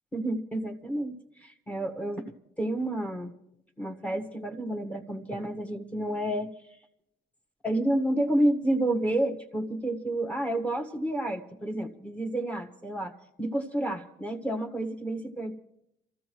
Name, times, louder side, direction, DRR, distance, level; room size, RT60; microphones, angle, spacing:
voice 1, 0.1-2.2 2.6-3.3 3.8-6.5 7.6-13.1 13.4-15.5, right 1 dB, 5° left, 6 dB, 1.6 m, -30 dB
27.0 x 14.5 x 3.1 m, 0.80 s
cardioid pair, 105°, 18 cm